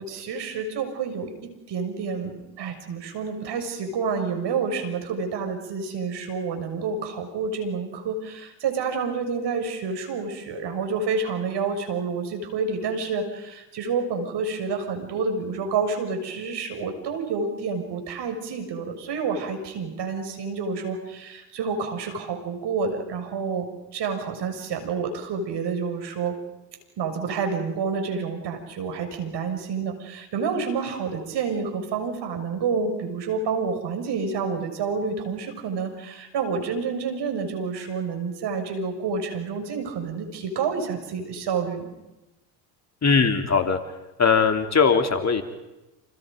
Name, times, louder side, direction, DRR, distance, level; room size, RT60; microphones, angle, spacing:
voice 1, 0.0-26.4 27.0-41.9, right 5 dB, 55° right, 6 dB, 6.3 m, -29 dB
voice 2, 43.0-43.8 44.2-45.4, left 5 dB, 35° left, 5 dB, 3.2 m, -20 dB
29.5 x 28.0 x 5.3 m, 1.0 s
supercardioid pair, 75°, 48 cm